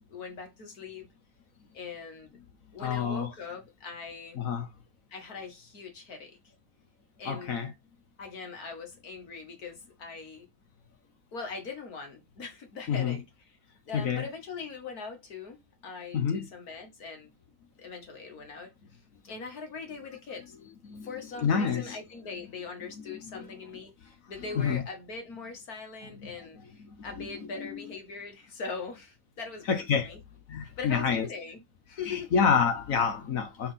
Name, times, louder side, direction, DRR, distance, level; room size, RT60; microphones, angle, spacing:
voice 1, 0.1-1.1 1.7-2.4 2.7-4.4 5.1-6.4 7.2-7.6 8.2-10.5 11.3-13.2 13.9-17.3 17.8-18.7 19.2-20.6 21.0-30.2 30.8-32.3, left 4 dB, 85° left, 2.3 m, -41 dB
voice 2, 2.8-3.3 4.4-4.7 7.2-7.7 12.9-13.2 13.9-14.2 16.1-16.5 20.9-21.1 21.4-22.0 23.1-23.5 24.6-24.8 26.1-26.3 26.8-27.8 29.7-30.1 30.5-31.3 32.1-33.7, left 6 dB, 65° left, 1.4 m, -28 dB
6.0 x 4.4 x 5.7 m
omnidirectional pair, 1.5 m